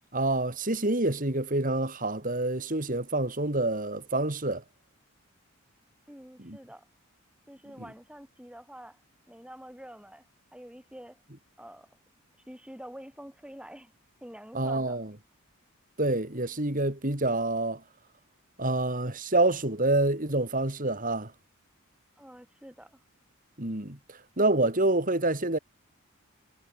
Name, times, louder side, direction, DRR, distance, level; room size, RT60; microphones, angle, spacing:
voice 1, 0.1-4.6 6.4-6.6 14.5-15.1 16.0-17.8 18.6-21.3 23.6-24.0 24.4-25.6, right 2 dB, 40° right, 3.0 m, -27 dB
voice 2, 6.1-6.9 7.5-9.0 9.3-10.2 10.5-11.2 11.6-12.0 12.5-13.9 14.2-15.0 22.2-23.0, equal, 5° right, 6.9 m, -47 dB
head